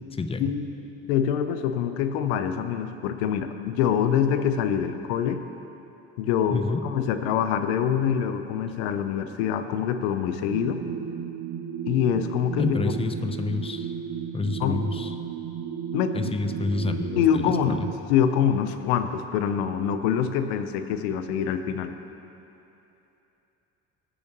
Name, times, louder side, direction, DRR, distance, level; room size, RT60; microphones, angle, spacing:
voice 1, 0.4-5.4 6.2-10.8 11.9-12.9 14.6-14.8 15.9-16.3 17.2-17.8 18.1-21.9, left 8 dB, 85° left, 9 dB, 0.7 m, -25 dB
voice 2, 6.5-6.8 12.6-13.9 14.3-15.2 16.1-17.9, left 3 dB, 20° left, 8 dB, 0.7 m, -28 dB
sound 1, 10.5-17.9, right 8 dB, 50° right, 0.9 m, -34 dB
20.5 x 6.9 x 3.0 m, 3.0 s
supercardioid pair, 90°, 31 cm